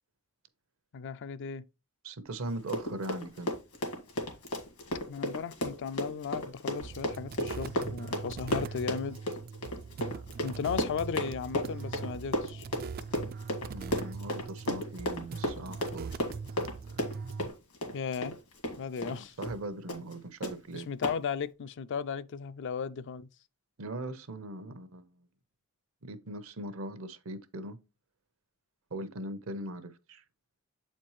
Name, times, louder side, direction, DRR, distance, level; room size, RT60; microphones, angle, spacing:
voice 1, 0.9-1.6 5.1-9.2 10.4-12.7 17.9-18.4 18.8-19.4 20.7-23.3, left 6 dB, 55° left, 0.4 m, -36 dB
voice 2, 2.0-3.5 13.7-16.2 19.0-20.9 23.8-25.3 26.0-27.8 28.9-30.2, right 1 dB, 70° right, 0.8 m, -40 dB
Run, 2.5-19.2 19.4-19.6 19.9-20.1 20.4-20.5 21.0-21.2, left 1 dB, 85° left, 1.8 m, -34 dB
sound 1, 6.8-17.5, right 5 dB, 45° right, 0.3 m, -41 dB
7.7 x 4.3 x 3.1 m
head